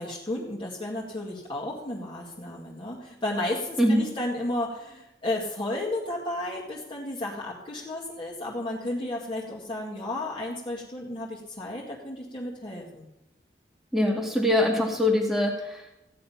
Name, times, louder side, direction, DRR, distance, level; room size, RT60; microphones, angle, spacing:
voice 1, 0.0-13.1, left 1 dB, 30° left, -4 dB, 2.1 m, -33 dB
voice 2, 13.9-15.9, left 1 dB, ahead, 0 dB, 1.9 m, -23 dB
15.5 x 9.4 x 5.7 m, 0.94 s
head